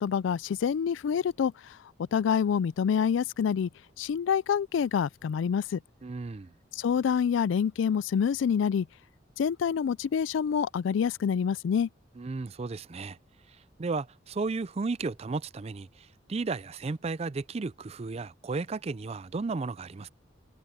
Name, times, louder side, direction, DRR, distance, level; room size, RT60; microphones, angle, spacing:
voice 1, 0.0-3.7 4.0-5.8 6.7-8.9 9.4-11.9, left 7 dB, 80° left, 0.3 m, -27 dB
voice 2, 6.0-6.5 12.2-13.2 13.8-20.1, right 3 dB, 35° right, 0.4 m, -34 dB
head